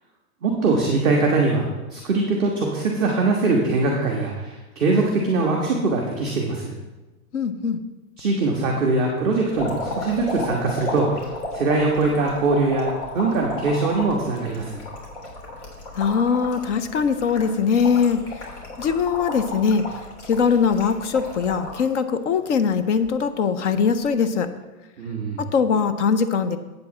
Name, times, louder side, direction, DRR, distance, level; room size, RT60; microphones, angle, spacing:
voice 1, 0.4-6.7 8.2-12.9 13.1-14.8 25.0-25.4, right 3 dB, ahead, -12 dB, 0.3 m, -22 dB
voice 2, 7.3-7.8 15.9-18.5 18.8-24.5 25.4-26.6, left 6 dB, 55° left, 10 dB, 0.7 m, -21 dB
sound 1, 9.5-21.9 22.3-23.1 24.1-24.2, left 2 dB, 75° left, 3.5 m, -33 dB
8.5 x 5.2 x 7.2 m, 1.2 s
supercardioid pair, 165°, 44 cm